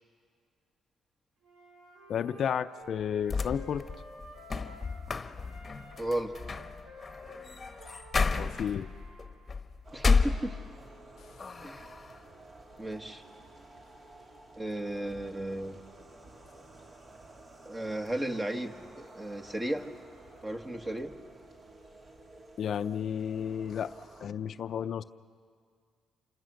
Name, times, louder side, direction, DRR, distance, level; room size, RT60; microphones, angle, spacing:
Wind instrument woodwind instrument, 1.4-5.1 5.4-9.3, equal, 85° right, 4.8 m, -52 dB
voice 1, 2.1-3.9 8.4-8.9 22.6-23.9 24.2-25.0, left 8 dB, 60° left, 11 dB, 0.6 m, -32 dB
sound 1, 3.0-11.0 11.4-12.2, left 4 dB, 30° left, 1.1 m, -32 dB
voice 2, 6.0-6.4 9.9-10.6 11.6-11.9 12.8-13.2 14.6-15.8 17.7-19.9 20.4-21.2, right 1 dB, 20° right, 5 dB, 1.8 m, -34 dB
sound 2, 9.8-24.3, right 2 dB, 40° right, 3.0 m, -52 dB
28.0 x 26.0 x 6.5 m, 2.1 s
cardioid pair, 90°, 0 cm